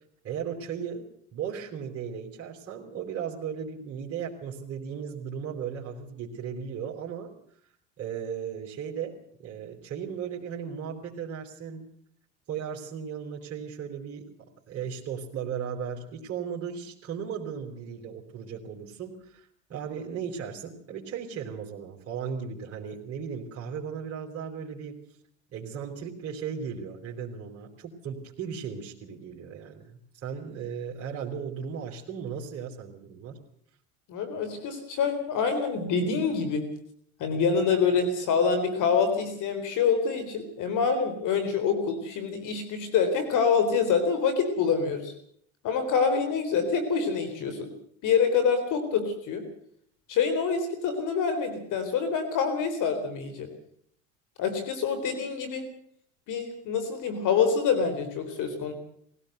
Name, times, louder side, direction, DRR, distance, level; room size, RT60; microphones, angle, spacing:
voice 1, 0.2-7.3 8.0-11.9 12.5-14.2 14.7-25.0 25.5-33.4, right 7 dB, 40° right, -2 dB, 3.9 m, -36 dB
voice 2, 34.1-36.7 37.2-45.1 45.6-47.7 48.0-49.4 50.1-53.5 54.4-55.7 56.3-58.7, left 6 dB, 55° left, 9 dB, 4.1 m, -26 dB
21.0 x 16.5 x 8.0 m, 0.66 s
supercardioid pair, 105°, 38 cm